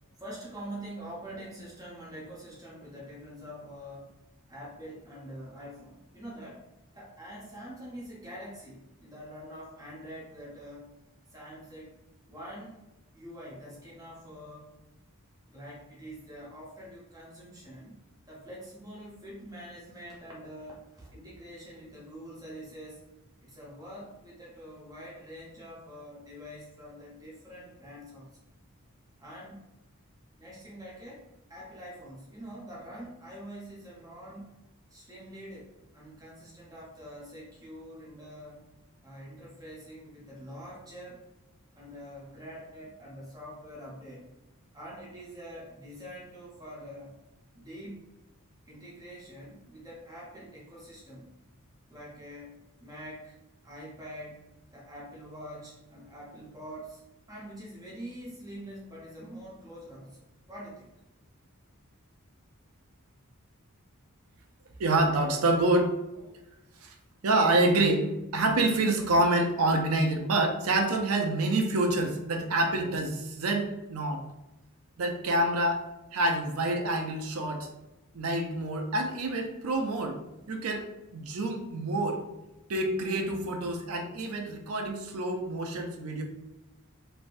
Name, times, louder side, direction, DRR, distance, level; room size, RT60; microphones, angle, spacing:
voice 1, 0.2-4.1 4.5-6.6 6.9-10.9 11.3-11.9 12.3-12.8 13.1-14.7 15.5-18.0 18.3-23.0 23.4-28.4 29.2-29.7 30.4-31.2 31.5-34.5 34.9-38.6 39.0-41.3 41.7-44.2 44.7-47.2 47.6-48.0 48.6-51.3 51.9-53.3 53.6-57.0 57.3-60.9, equal, 15° right, -5 dB, 0.7 m, -45 dB
voice 2, 64.8-66.3 66.8-66.9 67.2-74.2 75.0-75.9 76.1-77.7 78.1-80.2 80.5-80.9 81.1-82.2 82.7-86.2, right 2 dB, 75° right, 4 dB, 0.5 m, -27 dB
3.3 x 2.6 x 2.5 m, 0.98 s
head